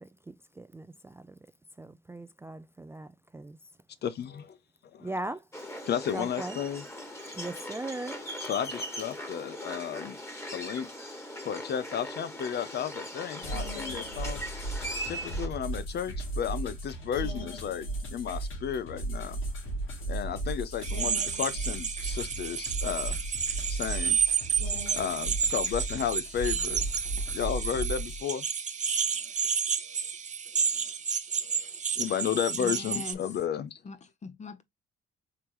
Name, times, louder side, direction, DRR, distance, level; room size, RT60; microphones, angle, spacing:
voice 1, 0.0-1.4 1.8-3.6 5.0-5.5 6.1-6.6 7.3-8.2, right 2 dB, 10° right, 0.3 m, -39 dB
voice 2, 4.0-4.6 4.9-5.1 5.8-6.8 8.4-10.2 10.5-10.9 11.4-14.4 15.0-19.4 20.1-23.2 23.7-24.2 24.9-26.8 27.3-28.4 30.8-30.9 31.5-33.8, left 8 dB, 55° left, 0.5 m, -33 dB
sound 1, 5.5-15.5, equal, 15° left, 1.5 m, -39 dB
sound 2, 13.4-28.2, right 2 dB, 80° left, 2.5 m, -36 dB
sound 3, 20.8-33.1, right 6 dB, 35° right, 0.7 m, -31 dB
voice 3, 32.5-33.2 33.8-34.6, left 4 dB, 35° left, 0.9 m, -42 dB
4.6 x 3.5 x 3.0 m
cardioid pair, 90°, 20 cm